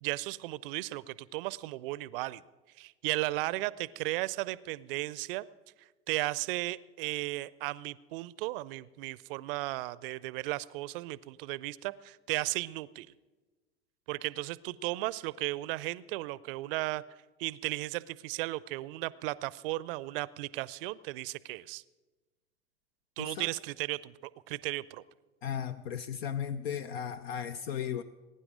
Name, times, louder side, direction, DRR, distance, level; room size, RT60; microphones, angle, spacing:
voice 1, 0.0-2.4 2.8-5.4 6.1-13.1 14.1-17.0 17.4-21.8 23.2-24.1 24.5-25.0, right 19 dB, 60° right, 20 dB, 0.5 m, -35 dB
voice 2, 23.2-23.5 25.4-28.0, left 8 dB, 70° left, 12 dB, 0.6 m, -36 dB
21.5 x 9.9 x 5.0 m, 1.2 s
figure-of-eight pair, 70°, 32 cm